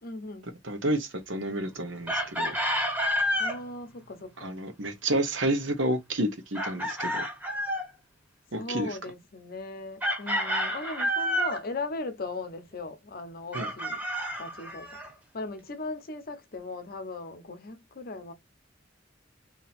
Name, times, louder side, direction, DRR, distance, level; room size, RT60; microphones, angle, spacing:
voice 1, 0.0-0.5 3.4-4.5 8.6-14.0 14.4-15.0 15.3-18.3, left 2 dB, 50° left, 0.7 m, -38 dB
voice 2, 0.6-2.5 4.4-7.2 8.5-9.0 13.5-13.7, right 1 dB, 75° right, 1.0 m, -30 dB
Chicken rooster, 2.1-3.6 6.6-7.9 10.0-11.6 13.5-15.1, equal, 10° right, 0.9 m, -29 dB
2.9 x 2.8 x 4.1 m
head